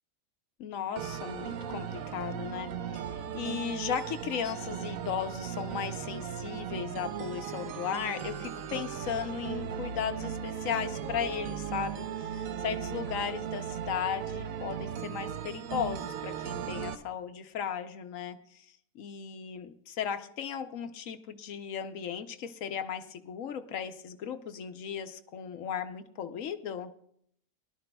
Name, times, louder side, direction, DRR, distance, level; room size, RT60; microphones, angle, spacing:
voice 1, 0.6-18.7 18.9-26.9, left 8 dB, 75° left, 9 dB, 1.1 m, -36 dB
sound 1, 1.0-17.0, right 8 dB, 90° right, 1.1 m, -37 dB
20.5 x 12.0 x 2.2 m, 0.69 s
omnidirectional pair, 1.4 m